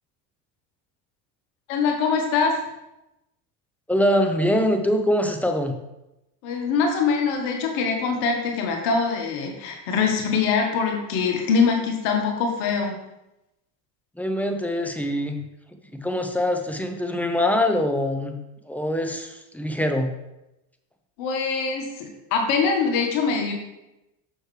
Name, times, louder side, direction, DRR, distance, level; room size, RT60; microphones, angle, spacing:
voice 1, 1.7-2.6 6.4-12.9 21.2-23.5, left 5 dB, 75° left, 2 dB, 1.5 m, -23 dB
voice 2, 3.9-5.8 14.2-15.4 15.9-18.4 18.7-20.1, left 1 dB, 5° left, 4 dB, 0.7 m, -23 dB
6.5 x 6.2 x 3.3 m, 0.93 s
supercardioid pair, 90°, 50 cm